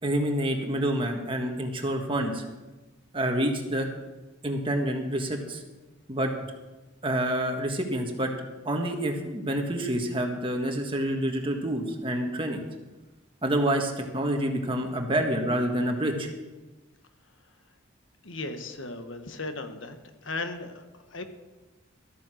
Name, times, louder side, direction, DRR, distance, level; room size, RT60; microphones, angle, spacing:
voice 1, 0.0-2.4 3.1-3.9 4.4-5.6 6.1-6.3 7.0-8.3 8.6-12.6 13.4-16.3, right 1 dB, 25° right, 3 dB, 1.6 m, -27 dB
voice 2, 18.2-20.0 20.2-21.3, left 2 dB, 75° left, 7 dB, 1.3 m, -36 dB
13.5 x 9.1 x 6.3 m, 1.1 s
head